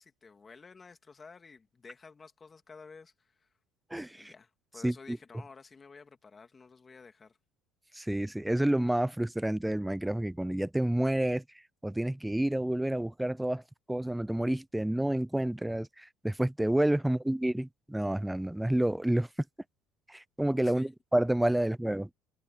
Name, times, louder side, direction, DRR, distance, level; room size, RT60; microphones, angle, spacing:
voice 1, 0.0-3.5 4.2-7.4 20.6-20.9, left 4 dB, 25° left, 2.5 m, -52 dB
voice 2, 3.9-4.3 4.8-5.2 7.9-11.4 11.8-13.6 13.9-19.3 20.1-22.1, right 1 dB, 5° right, 0.7 m, -29 dB
supercardioid pair, 100°, 0 cm